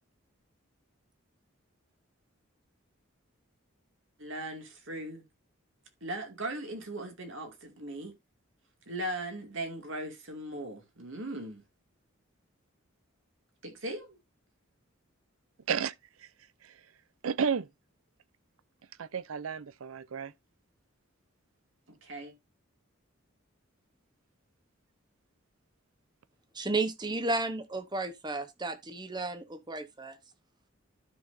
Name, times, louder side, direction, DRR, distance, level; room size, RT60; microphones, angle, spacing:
voice 1, 4.2-5.2 6.0-8.1 8.9-11.6 13.6-14.2 21.9-22.3, right 1 dB, 65° right, 2.3 m, -38 dB
voice 2, 17.2-17.7 19.0-20.3, right 6 dB, 85° right, 0.5 m, -32 dB
voice 3, 26.5-30.2, right 2 dB, 20° right, 0.9 m, -33 dB
12.5 x 5.8 x 2.6 m
head